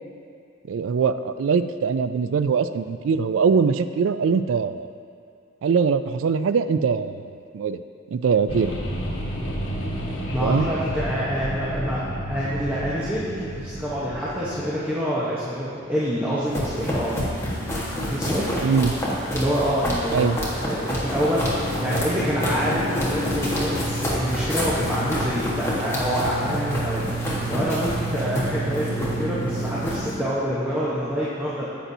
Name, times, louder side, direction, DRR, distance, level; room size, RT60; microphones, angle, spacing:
voice 1, 0.7-4.9 5.6-7.8 8.1-8.7 10.4-10.7 18.6-19.0 20.1-20.4, right 5 dB, 85° right, 11 dB, 0.4 m, -22 dB
sound 1, 8.5-14.7, equal, 80° left, 1.2 m, -31 dB
voice 2, 10.3-12.0 12.3-17.2 18.1-18.7 19.3-31.6, equal, 10° right, -9 dB, 1.0 m, -26 dB
sound 2, 16.5-30.1, equal, 15° left, 1.4 m, -27 dB
10.0 x 8.0 x 2.7 m, 2.5 s
head